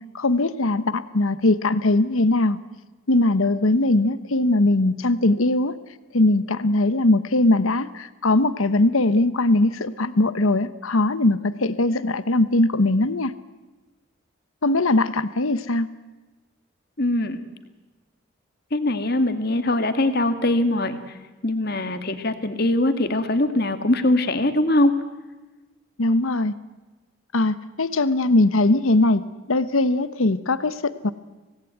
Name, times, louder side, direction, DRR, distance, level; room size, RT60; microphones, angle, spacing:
voice 1, 0.0-2.6 3.1-5.8 6.1-13.3 14.6-15.9 26.0-26.5 27.3-31.1, left 2 dB, 75° left, 14 dB, 1.0 m, -20 dB
voice 2, 17.0-17.4 18.7-21.0 21.4-24.9, left 1 dB, 45° left, 9 dB, 2.0 m, -22 dB
25.0 x 18.5 x 9.3 m, 1.2 s
head